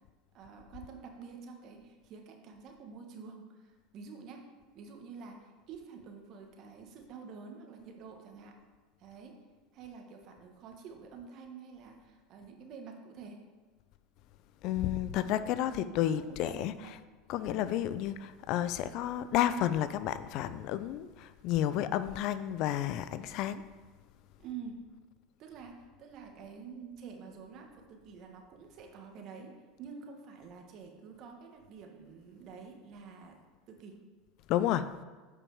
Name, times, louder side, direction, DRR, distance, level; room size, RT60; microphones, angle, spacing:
voice 1, 0.3-4.5 4.7-8.6 9.0-9.4 9.7-13.4 15.6-17.0 24.4-24.8 25.4-33.4 33.7-34.0, right 5 dB, 50° right, 1.6 m, -48 dB
voice 2, 14.6-17.0 17.3-23.6 34.5-34.9, left 11 dB, 60° left, 0.4 m, -31 dB
8.3 x 5.5 x 5.0 m
hypercardioid pair, 85°, 0 cm